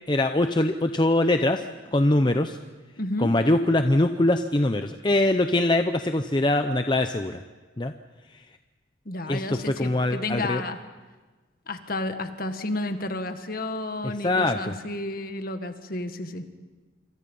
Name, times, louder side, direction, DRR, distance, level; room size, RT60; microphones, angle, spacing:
voice 1, 0.1-1.6 1.9-2.6 3.2-7.4 7.8-7.9 9.3-10.6 14.0-14.7, left 1 dB, 25° left, 7 dB, 0.7 m, -23 dB
voice 2, 3.0-3.3 9.0-10.8 11.7-16.4, left 2 dB, 50° left, 7 dB, 1.7 m, -31 dB
27.0 x 26.5 x 5.5 m, 1.3 s
head